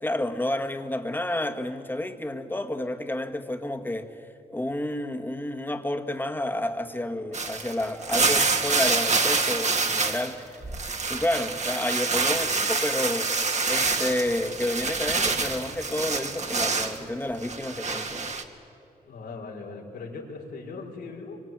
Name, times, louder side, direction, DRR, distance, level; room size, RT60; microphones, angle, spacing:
voice 1, 0.0-4.3 4.5-10.5 11.1-13.3 13.7-18.3, left 1 dB, 10° left, 5 dB, 2.0 m, -30 dB
sound 1, 7.3-10.3 10.6-17.0 17.4-18.4, right 4 dB, 45° right, 2.4 m, -26 dB
voice 2, 19.0-21.4, left 4 dB, 85° left, -1 dB, 5.0 m, -39 dB
24.5 x 24.5 x 9.1 m, 2.7 s
cardioid pair, 70°, 17 cm